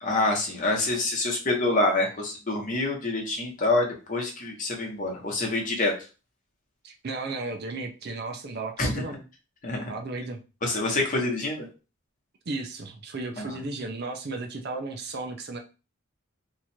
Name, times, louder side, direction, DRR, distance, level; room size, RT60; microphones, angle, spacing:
voice 1, 0.0-5.9 8.8-9.0 9.6-9.9 10.6-11.7 13.4-13.5, left 2 dB, 40° left, 0 dB, 1.0 m, -26 dB
voice 2, 6.8-9.2 9.9-10.4 12.5-15.6, right 3 dB, 50° right, 4 dB, 0.6 m, -34 dB
3.0 x 2.4 x 4.3 m, 0.32 s
head